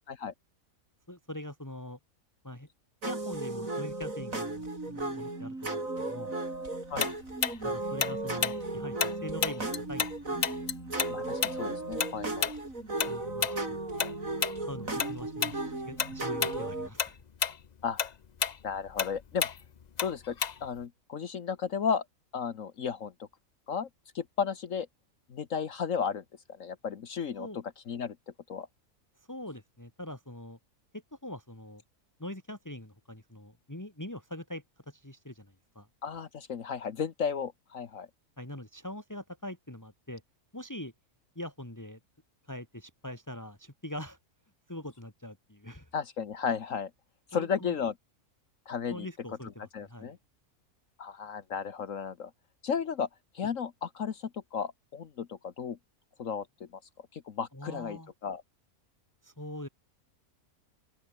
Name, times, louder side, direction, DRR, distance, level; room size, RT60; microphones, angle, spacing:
voice 1, 1.1-2.0 2.4-2.7 3.0-6.3 7.6-10.4 13.1-13.8 14.6-17.2 27.4-27.6 29.3-30.6 30.9-31.8 32.2-35.9 38.4-40.2 40.5-40.9 41.3-42.0 42.5-44.2 44.7-45.9 47.3-47.8 48.9-50.2 57.5-58.1 59.2-59.7, left 1 dB, 10° left, 3.1 m, -43 dB
sound 1, 3.0-16.9, right 2 dB, 65° right, 5.9 m, -35 dB
Tick-tock, 7.0-10.1 10.4-15.1 15.4-15.6 16.0-16.6 16.9-20.8, left 7 dB, 45° left, 0.6 m, -31 dB
voice 2, 11.1-12.5 17.8-18.0 18.6-19.5 20.0-22.0 22.3-23.1 23.7-23.9 24.1-24.9 25.3-26.2 26.5-28.2 28.5-28.7 36.0-38.1 45.9-46.9 47.3-47.9 48.7-49.1 49.7-50.2 51.0-52.3 52.6-53.1 53.3-55.8 56.2-56.7 57.1-58.4, left 6 dB, 65° left, 1.5 m, -34 dB
open air
omnidirectional pair, 1.5 m